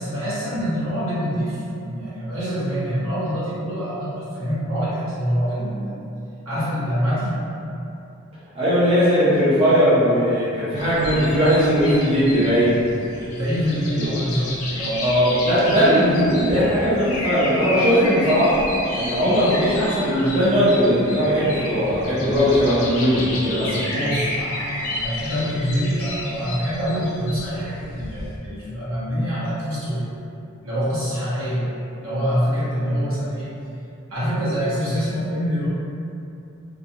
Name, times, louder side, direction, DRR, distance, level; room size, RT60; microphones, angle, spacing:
voice 1, 0.0-5.9 6.4-7.3 13.3-15.0 23.9-30.0 30.6-31.6 32.0-33.5 34.1-35.7, equal, 70° right, -10 dB, 0.9 m, -25 dB
voice 2, 8.5-12.8 13.9-14.0 15.0-18.6 18.9-23.8, equal, 30° right, -11 dB, 0.5 m, -18 dB
sound 1, 10.8-28.4, left 2 dB, 80° left, 0.4 m, -31 dB
2.4 x 2.2 x 2.7 m, 2.7 s
head